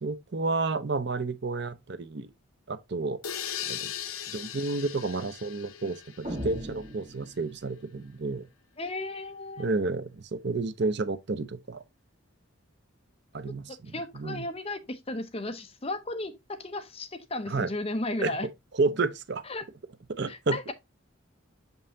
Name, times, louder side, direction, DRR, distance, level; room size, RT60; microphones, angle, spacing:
voice 1, 0.0-2.3 2.7-3.2 3.7-3.9 4.3-8.5 9.6-11.8 13.3-14.5 17.5-17.7 18.2-18.3 18.7-19.4 20.1-20.6, right 3 dB, 55° right, 0.6 m, -30 dB
sound 1, 3.2-7.0, left 9 dB, 85° left, 0.8 m, -38 dB
sound 2, 6.2-7.9, equal, 30° right, 1.5 m, -38 dB
voice 2, 8.8-9.7 13.5-18.5 19.5-19.7 20.3-20.7, left 2 dB, 30° left, 0.8 m, -35 dB
6.8 x 5.4 x 2.7 m
head